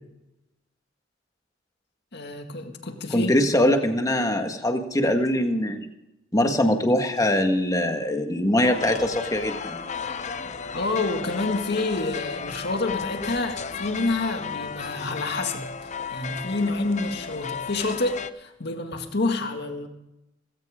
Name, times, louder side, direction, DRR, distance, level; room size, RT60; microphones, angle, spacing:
voice 1, 2.1-3.3 10.7-15.7 16.1-19.9, left 2 dB, 60° left, 4 dB, 2.0 m, -28 dB
voice 2, 3.1-5.9 6.3-9.8, left 1 dB, 20° left, 5 dB, 1.6 m, -22 dB
sound 1, 8.6-18.3, left 5 dB, 40° left, 0.7 m, -34 dB
19.0 x 17.0 x 3.7 m, 0.90 s
head